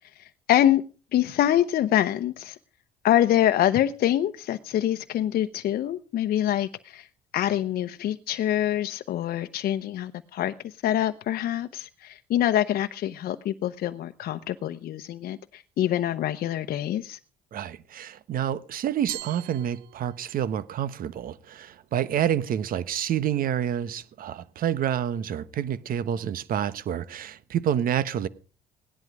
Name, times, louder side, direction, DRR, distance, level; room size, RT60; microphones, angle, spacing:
voice 1, 0.2-0.8 1.1-2.6 3.0-7.1 7.3-17.2, left 12 dB, 60° left, 0.9 m, -25 dB
voice 2, 17.5-28.3, right 10 dB, 60° right, 1.2 m, -28 dB
Glass, 19.1-20.5, right 15 dB, 90° right, 1.2 m, -40 dB
17.5 x 11.0 x 4.9 m
cardioid pair, 110°, 17 cm